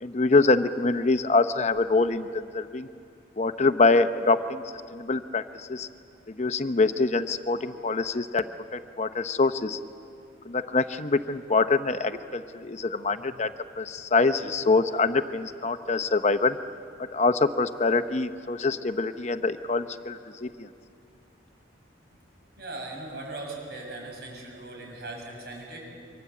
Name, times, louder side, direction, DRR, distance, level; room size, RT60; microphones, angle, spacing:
voice 1, 0.0-2.9 3.4-4.6 4.9-5.9 6.4-8.4 8.7-9.8 10.5-13.5 13.8-16.6 17.1-20.7, left 3 dB, 35° left, 10 dB, 0.7 m, -25 dB
voice 2, 22.6-25.8, right 2 dB, 60° right, 0 dB, 7.5 m, -39 dB
29.0 x 23.5 x 8.4 m, 2.5 s
head